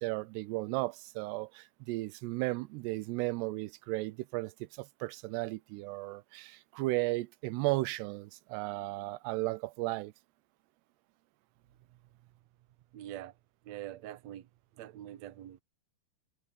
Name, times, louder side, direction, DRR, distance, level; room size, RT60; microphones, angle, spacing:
voice 1, 0.0-10.1, right 21 dB, 90° right, 2.8 m, -35 dB
voice 2, 12.9-13.3 13.6-14.5 14.8-15.6, right 12 dB, 75° right, 1.6 m, -44 dB
omnidirectional pair, 4.8 m